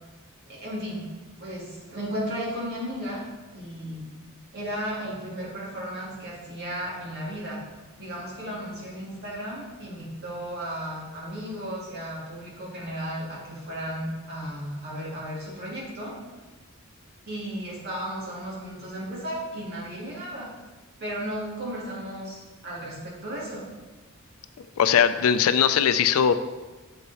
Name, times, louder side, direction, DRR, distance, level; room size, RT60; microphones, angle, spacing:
voice 1, 0.5-1.1 1.4-3.2 3.5-4.2 4.5-7.7 8.0-16.1 17.3-20.5 21.0-23.6, equal, 50° right, -6 dB, 2.3 m, -34 dB
voice 2, 24.8-26.3, left 8 dB, 80° left, 11 dB, 0.4 m, -20 dB
6.8 x 4.7 x 4.1 m, 1.2 s
head